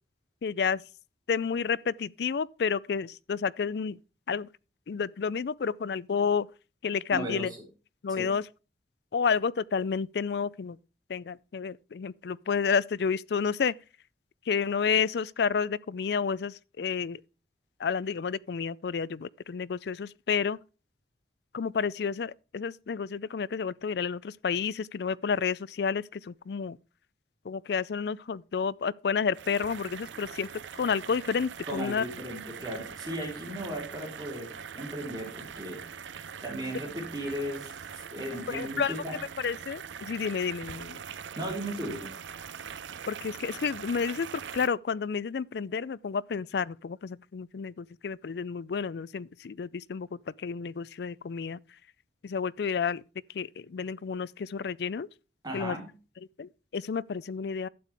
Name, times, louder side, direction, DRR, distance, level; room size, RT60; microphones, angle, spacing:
voice 1, 0.4-0.8 1.3-4.0 4.3-4.5 4.9-6.5 6.8-7.5 8.0-8.4 9.1-10.8 11.1-13.7 14.5-17.2 17.8-20.6 21.5-26.8 27.5-30.5 30.7-32.0 38.5-38.9 39.4-41.0 43.1-44.3 44.5-51.6 52.2-53.0 53.3-55.1 55.5-55.8 56.4-57.7, left 6 dB, 65° left, 0.4 m, -30 dB
voice 2, 7.1-7.6 8.2-8.3 31.7-39.2 41.4-42.1 55.4-55.9, right 1 dB, 25° right, 3.6 m, -36 dB
sound 1, 29.3-44.7, right 7 dB, 90° right, 0.6 m, -42 dB
12.0 x 8.3 x 3.4 m
head